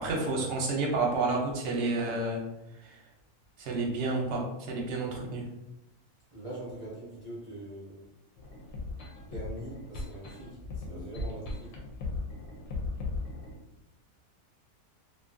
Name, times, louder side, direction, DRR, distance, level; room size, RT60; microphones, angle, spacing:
voice 1, 0.0-2.4 2.8-3.0 3.6-5.4, right 3 dB, 60° right, -1 dB, 0.8 m, -30 dB
voice 2, 6.3-8.0 9.2-11.7, right 1 dB, 45° right, -7 dB, 0.4 m, -43 dB
sound 1, 8.4-13.5, left 3 dB, 65° left, 0.9 m, -37 dB
2.6 x 2.3 x 2.5 m, 0.91 s
omnidirectional pair, 1.6 m